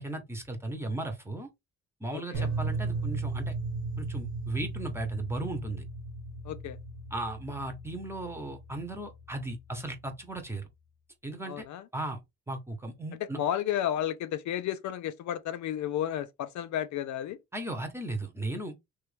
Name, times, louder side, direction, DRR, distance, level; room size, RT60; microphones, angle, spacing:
voice 1, 0.0-1.5 2.0-3.5 4.0-5.8 7.1-10.7 11.2-11.6 11.9-12.2 12.5-13.4 17.5-18.7, right 2 dB, 10° right, 1.0 m, -36 dB
voice 2, 2.1-2.5 6.4-6.8 11.5-11.8 13.3-17.4, left 11 dB, 70° left, 0.5 m, -32 dB
sound 1, 2.3-10.5, right 3 dB, 70° right, 1.1 m, -36 dB
3.0 x 2.6 x 3.3 m
cardioid pair, 90°, 30 cm